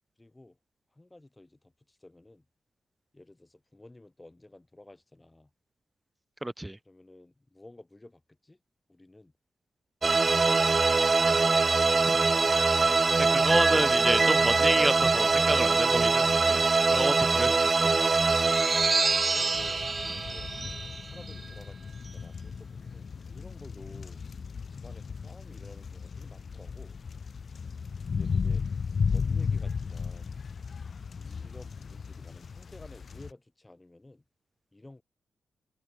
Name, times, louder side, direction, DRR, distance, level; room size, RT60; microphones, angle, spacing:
voice 1, 0.2-0.6 0.9-2.4 3.1-5.5 6.8-8.6 8.9-9.3 19.0-20.5 21.0-24.2 24.7-27.0 28.1-28.6 29.1-30.3 31.1-34.2 34.7-35.0, left 2 dB, 15° left, 4.8 m, -52 dB
voice 2, 6.4-6.8 12.1-12.2 13.2-16.6 16.9-17.9, right 1 dB, 10° right, 1.5 m, -29 dB
sound 1, 10.0-21.4, right 4 dB, 35° right, 0.4 m, -23 dB
sound 2, 19.5-33.3, left 5 dB, 55° left, 0.4 m, -35 dB
cardioid pair, 80°, 0 cm